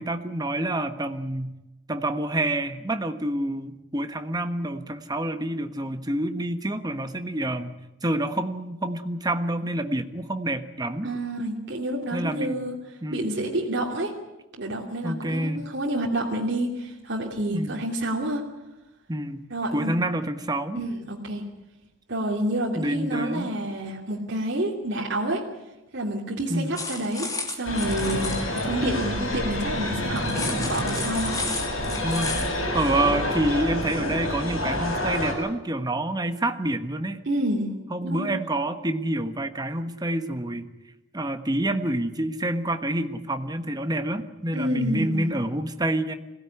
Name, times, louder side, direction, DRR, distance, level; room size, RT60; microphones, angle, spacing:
voice 1, 0.0-1.5 1.9-7.8 8.0-11.1 12.1-12.6 13.0-13.3 15.0-15.7 17.5-17.9 19.1-19.4 19.7-20.8 22.7-23.5 26.5-26.8 32.0-32.5 32.7-37.2 37.9-40.7 41.1-46.1, right 1 dB, 20° right, 8 dB, 1.3 m, -27 dB
voice 2, 11.0-12.7 13.1-14.1 14.6-18.4 19.5-19.9 20.7-21.4 22.1-25.4 25.9-31.4 37.3-37.7 38.0-38.4 44.5-45.3, right 1 dB, 60° right, -2 dB, 3.0 m, -28 dB
sound 1, 26.7-28.6 30.2-32.5, left 3 dB, 20° left, 2.8 m, -33 dB
sound 2, 27.6-35.3, left 1 dB, 85° left, 7.3 m, -28 dB
22.0 x 17.0 x 9.8 m, 1.0 s
head